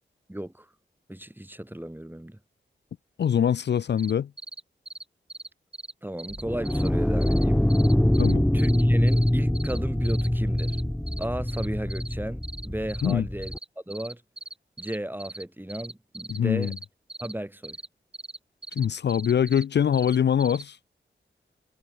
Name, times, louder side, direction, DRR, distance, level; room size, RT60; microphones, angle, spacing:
voice 1, 0.3-0.7 1.1-2.4 6.0-7.6 8.5-10.8 11.2-13.5 13.9-14.2 14.8-16.7 17.2-17.8, right 1 dB, 10° right, 3.3 m, -34 dB
voice 2, 3.2-4.3 8.2-8.4 13.0-13.2 16.3-16.8 18.7-20.8, left 8 dB, 65° left, 0.4 m, -23 dB
sound 1, 4.0-4.1 4.4-4.6 4.9-5.0 5.3-5.5 5.7-5.9 6.2-6.9 7.2-7.4 7.7-8.3 8.6-9.8 10.0-10.3 10.6-10.8 11.1-12.1 12.4-13.1 13.4-13.7 13.9-15.4 15.7-17.3 17.6-17.9 18.1-18.4 18.6-19.6 19.9-20.6, right 2 dB, 30° right, 3.7 m, -40 dB
sound 2, 6.3-13.6, left 1 dB, 5° left, 0.6 m, -24 dB
cardioid pair, 55°, 19 cm